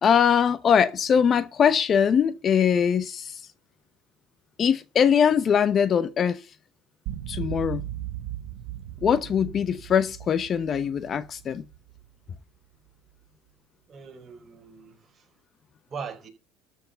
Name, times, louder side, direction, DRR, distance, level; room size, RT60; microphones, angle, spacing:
voice 1, 0.0-3.4 4.6-6.4 7.3-7.8 9.0-11.6, left 7 dB, 35° left, 0.8 m, -22 dB
sound 1, 7.1-12.4, right 13 dB, 75° right, 1.7 m, -37 dB
voice 2, 13.9-15.3 15.9-16.3, right 6 dB, 30° right, 4.8 m, -40 dB
13.5 x 6.4 x 6.9 m
cardioid pair, 125°, 0 cm